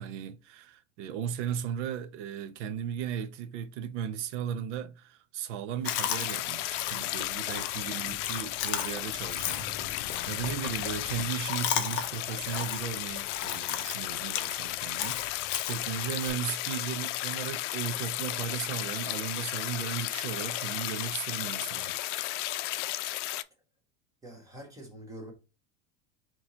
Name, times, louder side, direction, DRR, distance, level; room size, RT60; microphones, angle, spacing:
voice 1, 0.0-22.0, right 8 dB, 85° right, 0.7 m, -36 dB
sound 1, 5.8-23.4, left 16 dB, 90° left, 0.5 m, -34 dB
Chewing mastication, 5.8-16.3, left 10 dB, 35° left, 0.5 m, -37 dB
voice 2, 24.2-25.3, right 1 dB, 10° right, 0.8 m, -45 dB
4.3 x 3.0 x 3.7 m
supercardioid pair, 165°, 35 cm